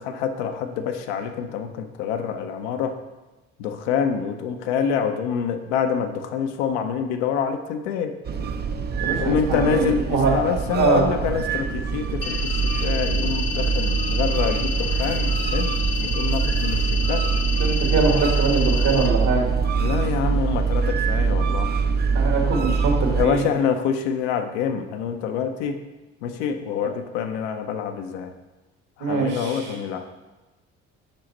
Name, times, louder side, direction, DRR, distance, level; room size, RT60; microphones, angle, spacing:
voice 1, 0.0-3.0 3.6-8.1 9.2-17.3 19.8-21.7 23.1-25.8 26.2-28.3 29.0-30.1, left 7 dB, 80° left, 6 dB, 0.6 m, -26 dB
sound 1, 8.3-23.3, right 5 dB, 30° right, 0.4 m, -24 dB
voice 2, 9.0-10.3 10.7-11.0 17.6-19.4 22.1-23.4 29.0-29.8, right 4 dB, 60° right, 0 dB, 1.7 m, -23 dB
sound 2, 12.2-19.1, left 6 dB, 60° left, 1.0 m, -30 dB
5.3 x 5.0 x 4.1 m, 1.1 s
hypercardioid pair, 60°, 35 cm